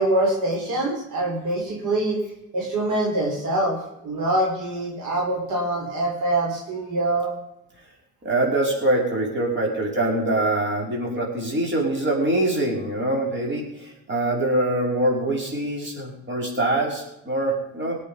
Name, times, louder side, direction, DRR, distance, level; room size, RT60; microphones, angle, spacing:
voice 1, 0.0-2.2 2.5-7.3, right 1 dB, 85° right, -1 dB, 4.5 m, -24 dB
voice 2, 8.2-18.0, right 1 dB, 40° right, -1 dB, 5.6 m, -24 dB
19.5 x 8.5 x 5.3 m, 0.82 s
cardioid pair, 90°, 30 cm